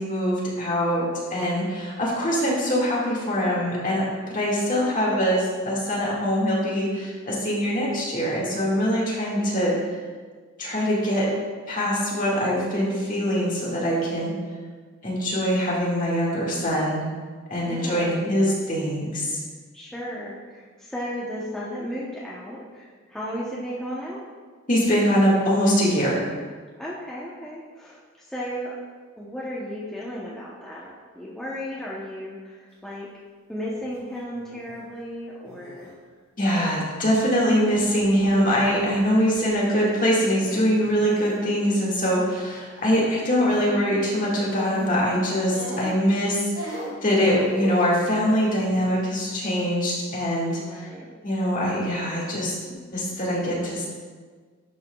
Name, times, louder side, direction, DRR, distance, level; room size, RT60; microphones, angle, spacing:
voice 1, 0.0-9.8 10.6-11.3 11.7-14.3 15.0-17.0 17.5-19.4 24.7-26.2 36.4-50.6 51.2-52.5 52.9-53.9, equal, 40° left, -5 dB, 1.8 m, -23 dB
voice 2, 4.7-5.2 17.6-18.3 19.7-24.2 26.8-28.8 29.2-33.1 33.5-35.9 50.5-51.1, equal, 5° left, -7 dB, 0.7 m, -35 dB
sound 1, 33.7-34.0 34.3-34.8 35.4-35.9 36.8-37.2 38.4-39.2 39.4-39.5 40.2-41.4 42.7-43.1 43.4-43.7 44.5-45.2 45.5-46.2 46.5-48.0 48.6-49.1, equal, 85° right, 2.0 m, -38 dB
11.5 x 5.7 x 2.3 m, 1.5 s
head